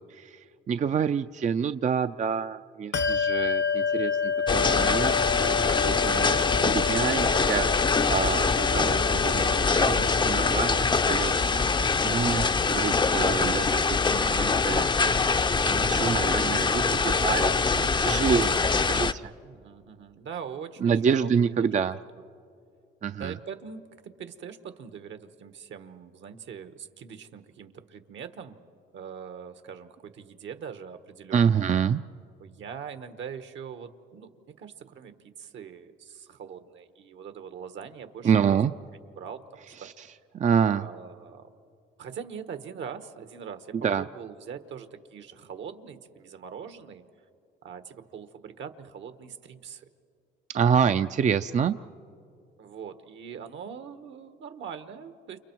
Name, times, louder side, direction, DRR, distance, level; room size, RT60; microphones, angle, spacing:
voice 1, 0.1-11.6 12.0-15.4 15.7-19.3 20.8-22.0 23.0-23.4 31.3-32.0 38.2-38.7 39.8-40.1 40.3-40.9 43.7-44.1 50.5-51.8, right 7 dB, 40° right, 10 dB, 0.5 m, -27 dB
voice 2, 0.7-1.1 19.4-21.3 21.6-21.7 23.2-28.6 28.9-31.6 32.4-38.6 39.2-39.9 40.7-41.5 42.0-47.1 47.6-49.9 52.6-55.4, right 7 dB, 70° right, 10 dB, 1.4 m, -42 dB
Bell, 2.9-12.9, left 6 dB, 65° left, 0.9 m, -30 dB
sound 1, 4.5-19.1, left 4 dB, 25° left, 0.6 m, -24 dB
29.5 x 29.0 x 4.6 m, 2.4 s
cardioid pair, 90°, 20 cm